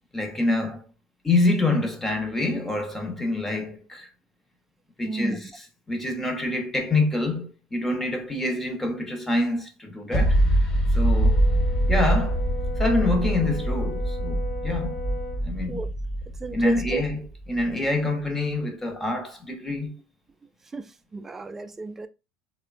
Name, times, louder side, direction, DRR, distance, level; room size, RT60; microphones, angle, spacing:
voice 1, 0.1-0.8 1.2-4.1 5.0-5.4 5.9-10.4 10.9-11.4 11.9-12.4 12.8-15.0 15.4-15.8 16.5-17.2 17.5-20.0, left 2 dB, 10° left, 0.7 m, -26 dB
voice 2, 5.0-5.4 15.6-15.9 16.4-17.1 20.6-22.1, right 3 dB, 15° right, 0.3 m, -32 dB
sound 1, 10.1-17.6, right 1 dB, 30° left, 1.1 m, -24 dB
Brass instrument, 11.2-15.5, left 3 dB, 65° left, 1.0 m, -37 dB
2.9 x 2.1 x 2.4 m
supercardioid pair, 100°, 2 cm